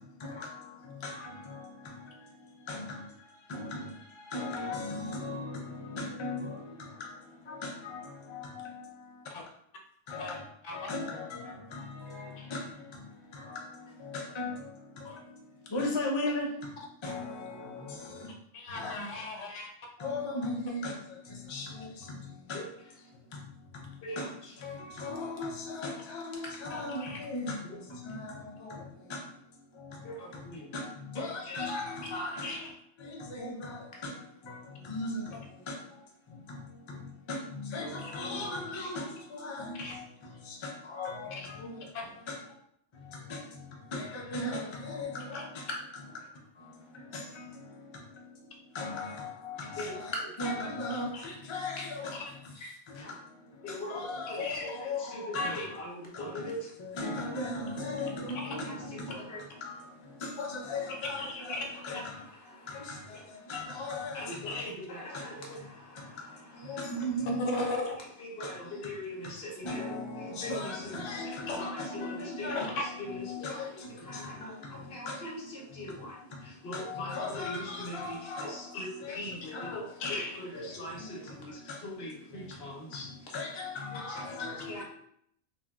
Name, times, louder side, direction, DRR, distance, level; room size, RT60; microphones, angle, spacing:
voice 1, 0.0-9.2 10.1-10.4 10.7-18.3 18.7-18.9 20.0-22.6 23.1-24.3 24.6-34.1 34.4-42.5 42.9-45.7 46.5-50.1 50.4-52.5 52.9-55.6 56.1-56.5 56.8-64.6 65.1-65.7 65.9-67.7 68.4-68.9 69.6-76.0 76.2-79.2 79.5-80.1 80.5-81.8 82.3-83.0 83.3-84.8, left 2 dB, 45° left, -1 dB, 0.4 m, -39 dB
voice 2, 18.5-19.7 26.7-27.2 31.5-31.7 32.0-32.1 32.4-32.7 39.8-39.9 41.4-41.5 41.9-42.1 45.3-45.4 51.1-51.2 54.4-54.6 55.3-55.7 61.2-61.8 64.5-64.6 67.4-67.9 71.5-71.6 78.7-78.8 80.0-80.3, left 3 dB, 85° left, 1 dB, 1.0 m, -37 dB
voice 3, 24.0-24.8 27.6-27.8 30.0-30.7 31.1-31.6 37.8-37.9 38.3-38.4 46.7-46.9 49.8-50.3 51.8-52.0 52.5-53.2 53.6-56.7 58.4-59.4 61.4-63.5 64.1-67.0 67.7-83.3 83.9-84.8, left 1 dB, 60° left, -2 dB, 1.0 m, -42 dB
3.3 x 2.2 x 2.3 m, 0.68 s
omnidirectional pair, 1.2 m